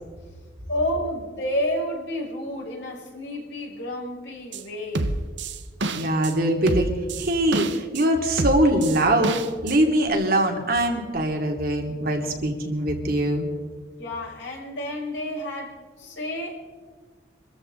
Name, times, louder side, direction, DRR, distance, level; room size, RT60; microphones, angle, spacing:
voice 1, 0.7-5.1 14.0-16.6, left 1 dB, 65° left, -2 dB, 6.1 m, -30 dB
sound 1, 4.5-4.6 5.0-6.3 6.7-8.1 8.4-9.8 10.1-10.2, right 2 dB, 65° right, 1.1 m, -27 dB
voice 2, 5.9-6.9 7.2-13.4, right 1 dB, 50° right, 2 dB, 2.6 m, -22 dB
26.0 x 14.0 x 3.9 m, 1.5 s
head